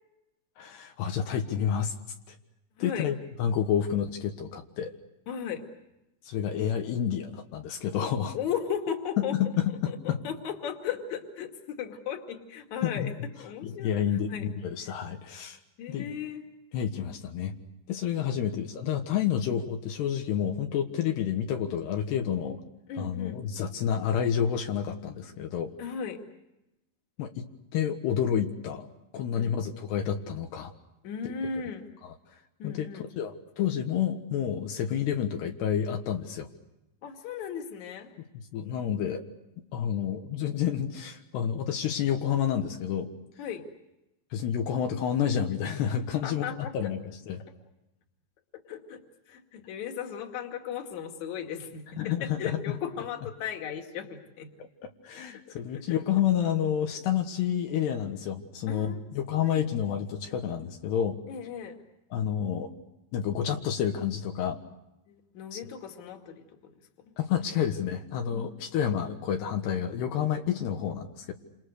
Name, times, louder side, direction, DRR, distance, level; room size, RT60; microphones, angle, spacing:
voice 1, 0.6-1.9 2.3-2.4 2.8-4.9 6.3-8.4 9.3-10.2 12.8-13.1 13.6-15.6 15.9-16.1 16.7-17.5 17.9-22.6 23.0-25.7 27.2-27.5 27.7-28.9 29.1-30.7 32.0-32.1 32.6-32.9 33.2-36.5 38.5-39.2 39.7-43.1 44.3-47.0 47.3-47.4 52.0-52.4 55.0-61.2 62.1-62.7 63.1-64.6 65.5-65.6 67.2-71.3, left 9 dB, 75° left, 4 dB, 3.4 m, -29 dB
voice 2, 2.8-3.1 5.3-5.6 8.3-9.4 9.9-13.1 13.4-14.0 14.3-14.5 15.8-16.5 22.9-23.4 25.8-26.2 29.4-29.6 31.0-31.9 32.6-33.0 37.0-38.1 43.4-43.7 46.2-46.9 48.7-49.0 49.3-54.5 55.5-56.0 58.7-59.1 59.4-59.7 61.3-61.8 65.1-66.4 68.3-68.6, left 7 dB, 50° left, 3 dB, 3.3 m, -36 dB
29.0 x 27.5 x 6.6 m, 0.93 s
omnidirectional pair, 4.9 m